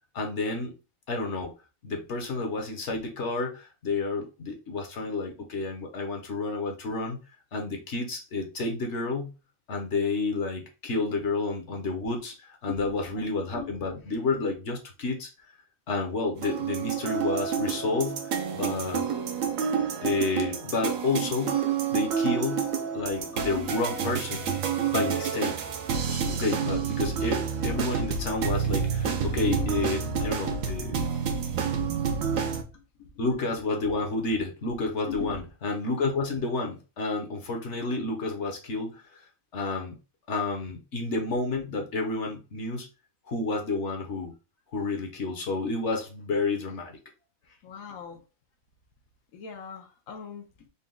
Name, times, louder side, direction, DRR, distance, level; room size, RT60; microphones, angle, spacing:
voice 1, 0.1-0.7 1.1-1.6 1.8-7.2 7.5-9.3 9.7-15.3 15.9-18.2 18.5-19.1 20.0-21.7 21.9-22.7 22.9-24.5 24.9-25.6 26.1-31.1 33.2-39.0 39.5-39.9 40.3-42.9 43.3-44.4 44.7-47.0, left 3 dB, 60° left, 1.0 m, -30 dB
voice 2, 12.7-13.2 13.5-13.7 23.2-23.8 29.6-29.7 31.4-31.6 32.0-32.2 33.0-33.1 35.1-35.4 47.6-48.2 49.3-50.4, left 7 dB, 80° left, 1.2 m, -40 dB
sound 1, 16.4-32.6, right 6 dB, 75° right, 1.0 m, -29 dB
4.0 x 2.2 x 3.7 m
omnidirectional pair, 1.4 m